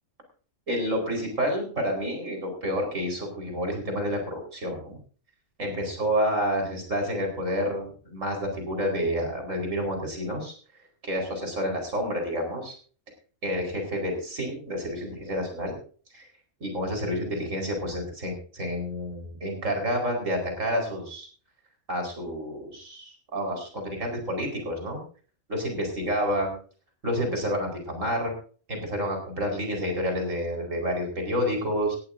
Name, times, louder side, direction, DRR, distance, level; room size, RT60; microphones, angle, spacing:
voice 1, 0.7-5.0 5.6-10.5 11.0-12.7 13.4-15.8 16.1-16.3 16.6-21.3 21.9-25.0 25.5-26.6 27.0-28.3 28.7-32.0, equal, 85° right, 3 dB, 5.1 m, -29 dB
19.0 x 14.0 x 2.7 m, 0.41 s
omnidirectional pair, 1.3 m